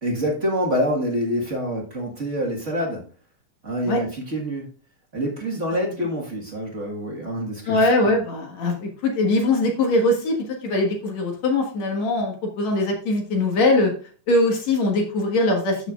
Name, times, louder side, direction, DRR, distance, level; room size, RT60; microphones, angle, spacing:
voice 1, 0.0-3.1 3.6-4.7 5.1-8.2, equal, 40° right, -2 dB, 1.1 m, -26 dB
voice 2, 7.7-10.4 10.6-13.9 14.3-15.9, left 2 dB, 60° left, 2 dB, 2.6 m, -21 dB
13.5 x 5.9 x 2.4 m, 0.40 s
omnidirectional pair, 3.7 m